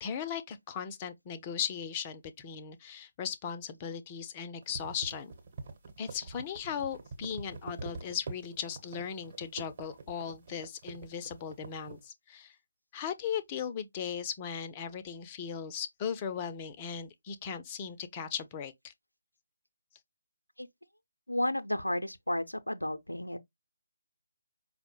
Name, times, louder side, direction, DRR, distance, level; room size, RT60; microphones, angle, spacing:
voice 1, 0.0-5.3 6.0-12.5 12.9-18.9, left 7 dB, 20° left, 0.4 m, -37 dB
sound 1, 4.6-12.0, right 4 dB, 35° right, 1.0 m, -44 dB
voice 2, 21.3-23.4, left 1 dB, 80° left, 0.5 m, -32 dB
4.9 x 2.1 x 3.1 m
figure-of-eight pair, 150°, 0 cm